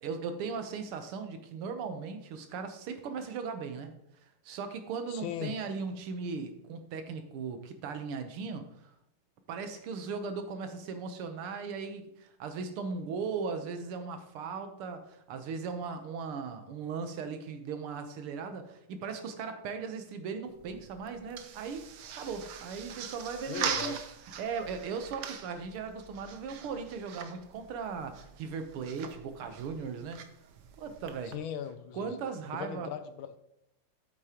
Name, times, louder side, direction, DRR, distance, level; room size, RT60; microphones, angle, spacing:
voice 1, 0.0-3.9 4.5-8.7 9.5-21.8 22.1-24.0 24.4-30.2 30.8-31.4 31.9-32.9, right 5 dB, 85° right, 8 dB, 1.8 m, -38 dB
voice 2, 5.1-5.5 23.5-24.0 31.2-32.1 32.5-33.4, left 9 dB, 75° left, 10 dB, 1.3 m, -38 dB
sound 1, 20.4-31.4, right 7 dB, 65° right, 1.1 m, -42 dB
8.6 x 8.3 x 2.9 m, 0.81 s
omnidirectional pair, 2.4 m